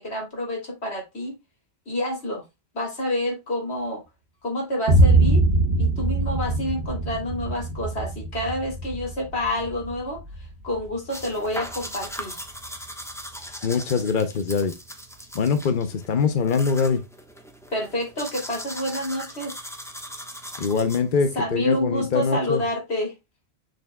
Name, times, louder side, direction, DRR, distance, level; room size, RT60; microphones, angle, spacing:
voice 1, 0.0-1.3 1.9-2.4 2.7-4.0 4.4-5.4 5.8-10.2 10.6-12.4 17.7-19.5 21.3-23.1, left 1 dB, 85° left, 3.2 m, -28 dB
Boom, 4.9-12.7, right 2 dB, 80° right, 1.3 m, -23 dB
sound 1, 11.1-21.3, equal, 5° left, 1.0 m, -39 dB
voice 2, 13.6-14.7 15.3-17.0 20.6-22.6, left 5 dB, 55° left, 0.9 m, -23 dB
6.8 x 6.4 x 2.2 m
omnidirectional pair, 1.1 m